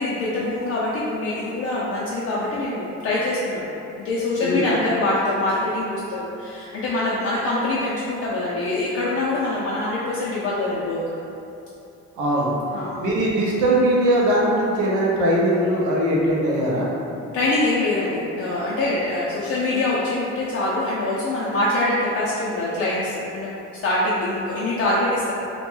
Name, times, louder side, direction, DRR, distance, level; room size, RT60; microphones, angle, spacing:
voice 1, 0.0-3.7 4.0-11.2 12.7-13.0 17.3-23.5 23.8-25.3, left 2 dB, 55° left, -7 dB, 0.4 m, -24 dB
voice 2, 12.2-12.5 13.0-16.9, right 1 dB, 85° right, -4 dB, 0.6 m, -20 dB
2.1 x 2.1 x 3.0 m, 2.8 s
cardioid pair, 90°, 30 cm